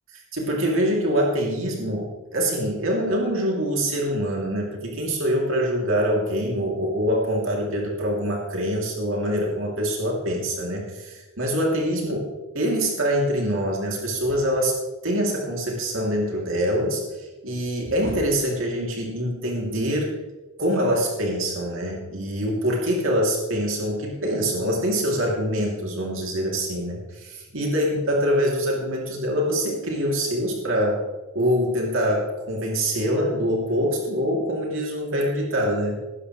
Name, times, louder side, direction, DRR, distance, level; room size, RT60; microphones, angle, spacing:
voice 1, 0.1-12.3 12.5-14.8 15.0-20.2 20.6-31.0 31.3-36.0, equal, 70° right, -1 dB, 3.0 m, -24 dB
17.5 x 13.0 x 3.3 m, 1.2 s
head